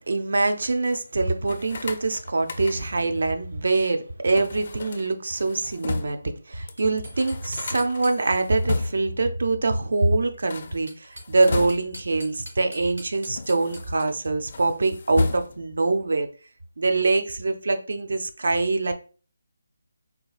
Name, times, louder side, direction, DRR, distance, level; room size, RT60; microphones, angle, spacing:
voice 1, 0.1-6.2 6.5-16.3 16.8-18.9, right 3 dB, 65° right, 0.5 m, -24 dB
sound 1, 1.4-3.1 4.4-6.3 6.7-6.8 7.0-9.2 10.3-12.1 12.9-14.2 14.5-15.8, left 3 dB, 50° left, 0.4 m, -33 dB
sound 2, 6.8-8.6 10.7-14.3, equal, 85° right, 1.6 m, -44 dB
3.9 x 2.4 x 2.3 m
figure-of-eight pair, 150°, 0 cm